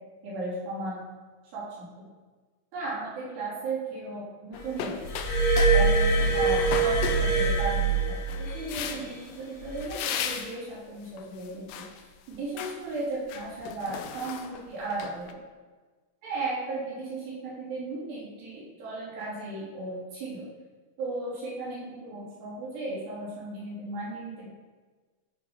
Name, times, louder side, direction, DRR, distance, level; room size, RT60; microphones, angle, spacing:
voice 1, 0.2-1.0 1.5-2.1 2.7-5.0 5.7-11.8 12.3-15.4 16.2-20.5 21.0-24.5, right 2 dB, 90° right, -8 dB, 5.6 m, -35 dB
sound 1, 4.5-5.8 6.1-7.7 8.3-9.3 9.8-10.6 11.1-12.0 12.3-12.8 13.2-15.3, left 8 dB, 80° left, 1.9 m, -36 dB
Glass, 5.1-8.7 9.6-9.8, right 3 dB, 60° left, 3.5 m, -23 dB
14.0 x 5.2 x 5.6 m, 1.4 s
omnidirectional pair, 4.6 m